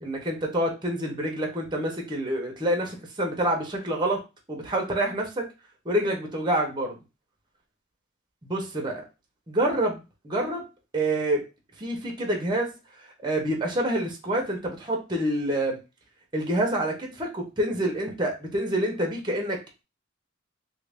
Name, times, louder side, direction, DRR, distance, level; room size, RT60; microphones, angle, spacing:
voice 1, 0.0-4.2 4.5-5.4 5.8-7.0 8.4-9.0 9.5-10.6 10.9-11.4 11.8-12.7 13.2-15.8 16.3-19.6, right 1 dB, 20° right, 1 dB, 0.8 m, -27 dB
2.9 x 2.6 x 3.4 m, 0.26 s
head